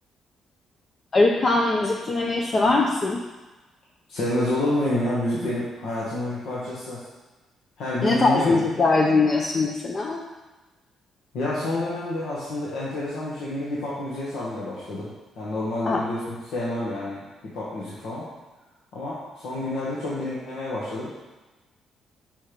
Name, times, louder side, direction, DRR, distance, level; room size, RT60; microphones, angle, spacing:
voice 1, 1.1-3.2 8.0-10.3 15.8-16.0, left 3 dB, 40° left, -1 dB, 0.7 m, -21 dB
voice 2, 4.1-7.0 7.8-8.6 11.3-15.1 15.4-17.2 17.5-18.2 18.9-21.1, left 1 dB, 80° left, -8 dB, 1.4 m, -28 dB
5.6 x 4.4 x 5.1 m, 1.2 s
cardioid pair, 90°, 0 cm